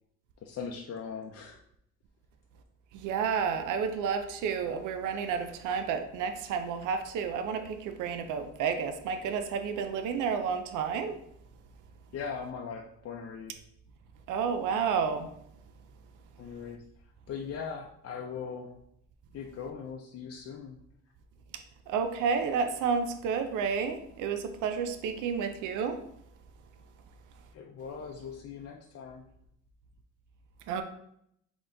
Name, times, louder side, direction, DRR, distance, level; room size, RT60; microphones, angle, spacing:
voice 1, 0.4-1.6 12.1-13.5 16.4-16.8 17.3-18.7 19.3-20.8 27.5-29.2, left 6 dB, 55° left, 1 dB, 0.5 m, -40 dB
voice 2, 2.9-11.2 14.3-15.3 21.9-26.0 30.7-30.8, right 6 dB, 90° right, 8 dB, 0.5 m, -31 dB
4.0 x 3.0 x 3.7 m, 0.72 s
cardioid pair, 90°, 30 cm